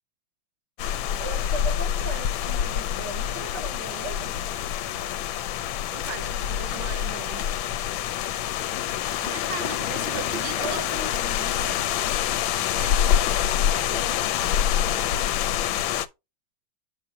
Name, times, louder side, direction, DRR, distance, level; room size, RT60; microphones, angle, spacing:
sound 1, 0.8-16.1, left 10 dB, 85° left, 1.4 m, -26 dB
voice 1, 1.2-4.4 10.2-11.9 12.8-13.2 13.5-14.2, right 3 dB, 65° right, 2.0 m, -38 dB
voice 2, 5.9-7.6 9.2-11.2 12.8-13.0 13.6-14.0 14.7-15.5, right 9 dB, 80° right, 1.4 m, -39 dB
Applause / Crowd, 8.5-13.5, left 10 dB, 70° left, 1.0 m, -40 dB
7.2 x 6.2 x 2.8 m
omnidirectional pair, 2.1 m